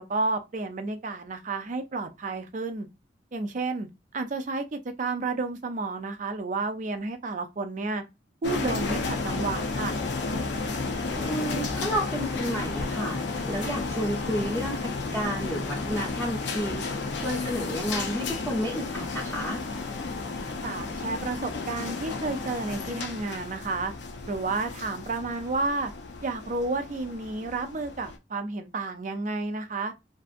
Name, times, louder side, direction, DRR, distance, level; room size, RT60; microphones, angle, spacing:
voice 1, 0.0-2.9 3.3-3.9 4.1-8.0 8.4-10.0 20.6-23.9 24.2-25.9 26.2-29.9, right 3 dB, 40° right, 0.4 m, -31 dB
sound 1, 8.4-28.2, left 3 dB, 65° left, 0.5 m, -32 dB
voice 2, 11.2-16.9 17.2-19.7, equal, ahead, 0.7 m, -31 dB
2.6 x 2.4 x 2.4 m
head